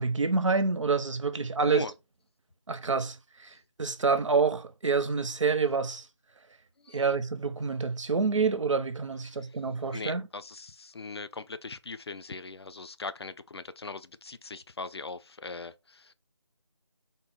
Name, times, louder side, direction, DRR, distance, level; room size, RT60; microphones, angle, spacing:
voice 1, 0.0-1.8 2.7-6.1 6.9-10.2, right 4 dB, 75° right, 0.6 m, -27 dB
voice 2, 1.6-1.9 6.8-7.0 9.3-9.5 9.9-16.1, left 4 dB, 55° left, 0.4 m, -40 dB
3.8 x 2.0 x 3.9 m
figure-of-eight pair, 170°, 16 cm